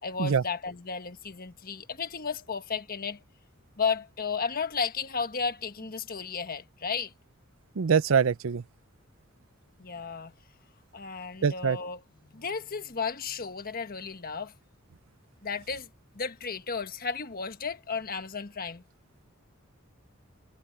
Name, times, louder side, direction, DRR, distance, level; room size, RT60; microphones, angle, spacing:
voice 1, 0.0-3.2 3.8-7.1 9.8-10.3 10.9-14.6 15.4-15.9 16.1-18.8, left 5 dB, 45° left, 1.4 m, -33 dB
voice 2, 7.8-8.6 11.4-11.8, right 6 dB, 70° right, 0.5 m, -24 dB
head